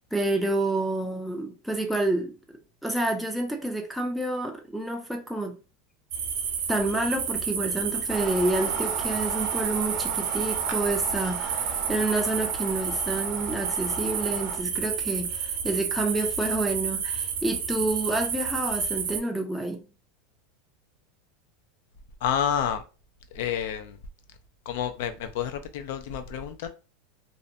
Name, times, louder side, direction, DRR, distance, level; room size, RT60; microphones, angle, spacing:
voice 1, 0.1-2.3 2.8-5.6 6.7-19.8, right 2 dB, ahead, 0.4 m, -28 dB
sound 1, 6.1-19.2, right 7 dB, 80° right, 0.7 m, -30 dB
sound 2, 8.1-14.6, right 6 dB, 45° right, 0.6 m, -36 dB
voice 2, 22.2-22.8 23.3-24.0 24.7-26.7, left 8 dB, 70° left, 0.4 m, -29 dB
2.6 x 2.1 x 2.5 m
supercardioid pair, 140°, 0 cm